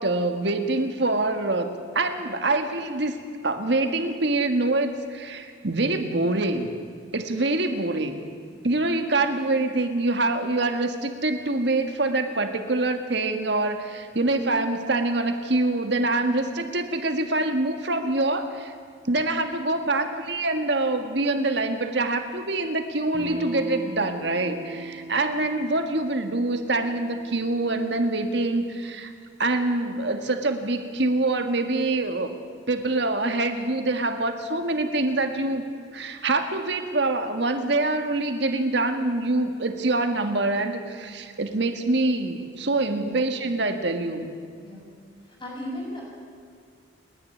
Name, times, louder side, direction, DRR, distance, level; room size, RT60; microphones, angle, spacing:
voice 1, 0.0-3.1 3.4-6.7 7.1-8.2 8.6-18.7 19.0-29.1 29.4-32.3 32.7-35.6 35.9-44.3, right 2 dB, 60° right, 7 dB, 1.7 m, -25 dB
Electric guitar / Strum, 23.1-28.2, right 2 dB, 35° right, 3.8 m, -37 dB
voice 2, 42.9-43.5 44.6-44.8 45.2-46.0, left 1 dB, 25° left, -4 dB, 6.9 m, -36 dB
29.5 x 10.5 x 9.7 m, 2.2 s
head